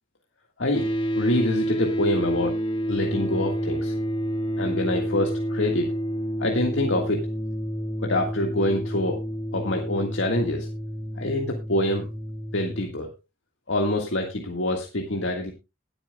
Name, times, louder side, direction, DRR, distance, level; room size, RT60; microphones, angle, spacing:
voice 1, 0.6-0.9 1.2-2.6 2.9-3.9 4.6-5.9 6.4-7.3 8.0-9.2 9.5-10.7 11.2-12.1 12.5-13.1 13.7-15.5, left 1 dB, 80° left, 2 dB, 1.8 m, -26 dB
sound 1, 0.7-12.8, equal, 25° left, 1.5 m, -29 dB
20.5 x 8.9 x 2.3 m, 0.27 s
head